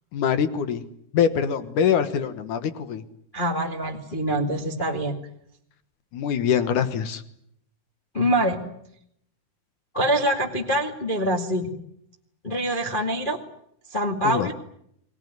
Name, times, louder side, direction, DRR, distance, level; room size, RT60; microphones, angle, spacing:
voice 1, 0.1-0.8 1.1-3.0 6.1-7.2 14.2-14.5, left 8 dB, 60° left, 11 dB, 2.2 m, -24 dB
voice 2, 3.3-5.1 8.1-8.6 9.9-11.7 12.4-13.4 13.9-14.5, right 1 dB, 25° left, 2 dB, 1.0 m, -24 dB
29.0 x 20.5 x 9.5 m, 0.74 s
omnidirectional pair, 5.0 m